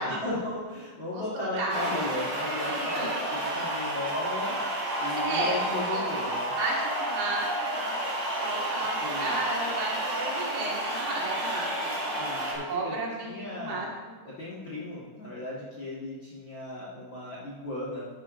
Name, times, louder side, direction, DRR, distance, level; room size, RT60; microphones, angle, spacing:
voice 1, 0.0-3.2 3.5-4.6 5.0-6.5 9.0-9.3 12.2-12.9 13.2-13.9 14.4-18.1, left 2 dB, 45° left, -8 dB, 1.6 m, -35 dB
voice 2, 1.1-2.1 2.7-3.1 5.2-5.6 5.9-6.1 6.6-8.1 8.4-12.3 12.7-13.9, right 2 dB, 75° right, -3 dB, 3.6 m, -33 dB
sound 1, 1.7-12.5, right 1 dB, 40° right, 2.9 m, -31 dB
12.0 x 9.5 x 2.5 m, 1.3 s
omnidirectional pair, 4.4 m